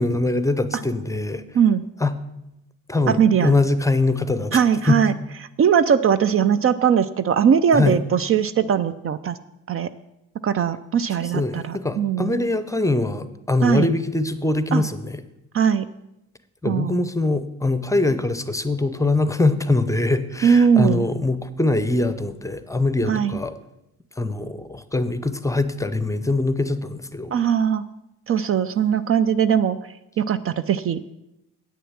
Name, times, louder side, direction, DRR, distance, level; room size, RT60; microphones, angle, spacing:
voice 1, 0.0-1.4 2.0-2.1 2.9-5.0 7.7-8.0 11.2-15.2 16.6-23.6 24.2-27.3, left 2 dB, 10° left, 12 dB, 0.6 m, -23 dB
voice 2, 3.1-3.5 4.5-5.1 5.6-9.4 9.7-9.9 10.4-12.3 13.6-13.9 14.7-14.8 15.5-15.9 16.7-17.0 20.4-21.1 23.1-23.4 27.3-27.8 28.3-29.8 30.2-31.0, right 7 dB, 50° right, 14 dB, 0.4 m, -20 dB
8.7 x 6.8 x 7.3 m, 0.89 s
cardioid pair, 90°, 30 cm